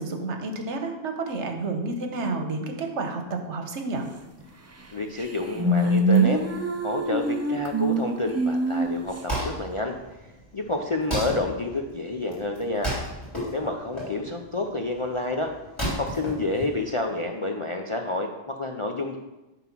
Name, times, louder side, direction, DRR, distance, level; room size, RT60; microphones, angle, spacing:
voice 1, 0.0-4.0, right 3 dB, 75° right, 4 dB, 1.3 m, -30 dB
sound 1, 4.8-4.9 5.2-9.2, right 2 dB, 25° right, 0.3 m, -24 dB
voice 2, 4.9-6.4 6.8-10.0 10.5-12.9 13.5-15.5 16.0-19.2, left 2 dB, 40° left, 2 dB, 0.4 m, -29 dB
Wood, 8.9-17.2, equal, 25° left, 3.1 m, -34 dB
9.3 x 3.8 x 5.9 m, 1.0 s
omnidirectional pair, 1.2 m